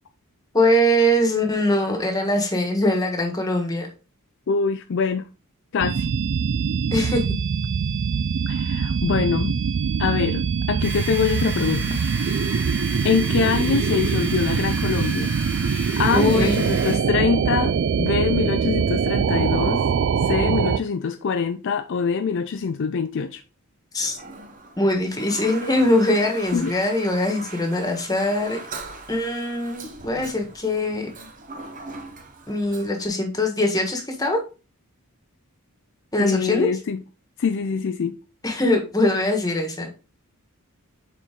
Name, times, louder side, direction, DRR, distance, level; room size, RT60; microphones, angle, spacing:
voice 1, 0.5-3.9 6.9-7.2 16.1-16.6 23.9-24.2 24.8-28.6 29.1-31.1 32.5-34.4 36.1-36.7 38.4-39.9, left 1 dB, 15° left, 1.5 m, -22 dB
voice 2, 4.5-5.3 5.7-6.1 8.5-9.6 10.0-12.0 13.0-15.3 15.9-19.8 20.3-23.4 26.5-26.7 36.2-37.0 37.4-38.2, left 5 dB, 55° left, 0.4 m, -24 dB
sound 1, 5.8-20.8, right 6 dB, 55° right, 0.3 m, -23 dB
sound 2, 10.8-17.0, right 1 dB, 10° right, 2.3 m, -34 dB
Toilet flush, 24.0-33.1, right 3 dB, 35° right, 0.9 m, -40 dB
7.0 x 4.4 x 3.7 m
head